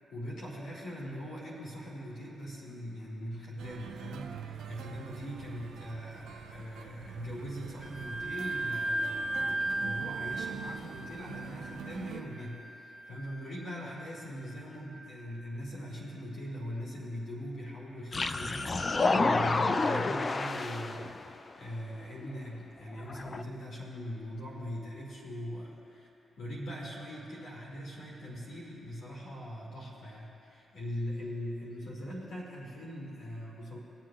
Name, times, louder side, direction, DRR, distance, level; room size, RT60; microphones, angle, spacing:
voice 1, 0.1-26.1 26.4-33.8, equal, 75° left, -5 dB, 2.1 m, -41 dB
sound 1, 3.6-12.2, right 7 dB, 80° right, 0.5 m, -45 dB
Wind instrument woodwind instrument, 7.8-15.2, right 2 dB, 15° left, 1.5 m, -37 dB
sound 2, 18.1-21.3 22.2-22.3 23.0-23.4, left 3 dB, 40° left, 0.4 m, -29 dB
22.0 x 7.5 x 2.4 m, 2.8 s
supercardioid pair, 55°, 0 cm